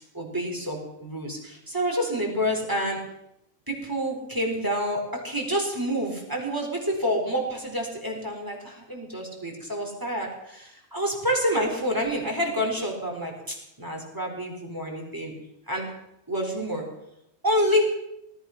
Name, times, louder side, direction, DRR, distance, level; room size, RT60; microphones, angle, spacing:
voice 1, 0.1-3.0 3.7-15.3 15.7-15.9 16.3-16.8 17.4-17.8, equal, 15° right, 0 dB, 4.1 m, -28 dB
18.5 x 12.0 x 5.9 m, 0.84 s
omnidirectional pair, 1.3 m